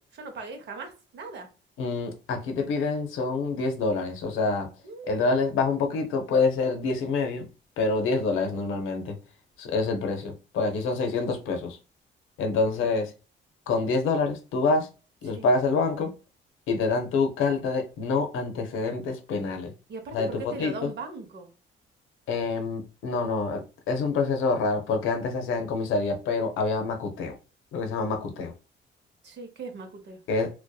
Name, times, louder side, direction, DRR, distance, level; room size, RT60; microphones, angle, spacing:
voice 1, 0.2-1.5 4.8-5.4 15.3-15.5 19.9-21.5 29.2-30.2, right 3 dB, 60° right, 0.7 m, -39 dB
voice 2, 1.8-4.7 5.1-7.5 7.8-9.2 9.6-11.8 12.4-13.1 13.7-14.9 15.2-16.1 16.7-19.7 20.1-20.9 22.3-27.4 27.7-28.5 30.3-30.5, left 4 dB, 90° left, 0.6 m, -26 dB
2.6 x 2.2 x 2.2 m
cardioid pair, 90°, 20 cm